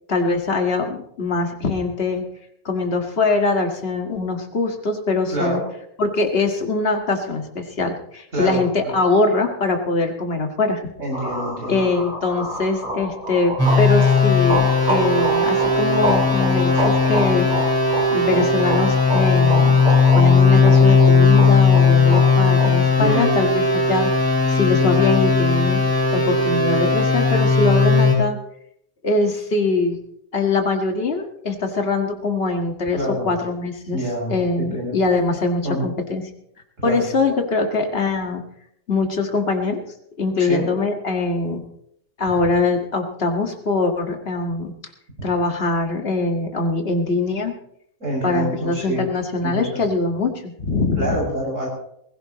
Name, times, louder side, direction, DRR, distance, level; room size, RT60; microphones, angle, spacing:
voice 1, 0.1-2.2 2.7-5.6 6.0-10.9 11.7-17.5 18.1-19.8 20.1-25.8 26.1-28.4 29.0-30.0 30.3-33.0 33.2-34.0 34.3-36.2 36.8-38.4 38.9-39.8 40.2-41.6 42.2-44.7 45.2-47.5 48.2-51.2, left 3 dB, 40° left, 3 dB, 2.0 m, -22 dB
voice 2, 5.3-5.6 8.3-8.6 11.0-11.8 23.0-23.3 32.9-33.3 33.9-34.3 34.6-34.9 35.6-35.8 36.8-37.0 40.4-40.7 48.0-49.1 49.4-49.7 51.0-51.7, equal, 55° right, -5 dB, 6.8 m, -25 dB
sound 1, 11.1-22.7, right 1 dB, 30° right, 4.4 m, -28 dB
sound 2, 13.6-28.1, left 4 dB, 10° right, 5.6 m, -17 dB
21.5 x 16.0 x 3.1 m, 0.72 s
omnidirectional pair, 1.5 m